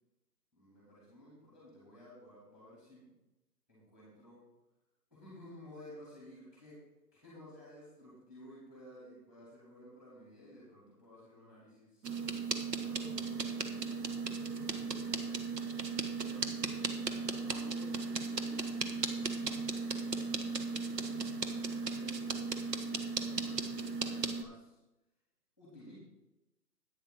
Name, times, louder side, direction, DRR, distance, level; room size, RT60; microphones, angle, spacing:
voice 1, 0.5-3.1 3.7-4.4 5.1-12.1 12.8-13.7 14.3-15.7 16.2-19.1 20.3-22.4 23.3-24.8 25.6-25.9, left 1 dB, ahead, -7 dB, 2.7 m, -55 dB
sound 1, 12.0-24.4, right 4 dB, 75° right, 1.2 m, -36 dB
10.0 x 9.2 x 3.9 m, 0.96 s
hypercardioid pair, 165°, 49 cm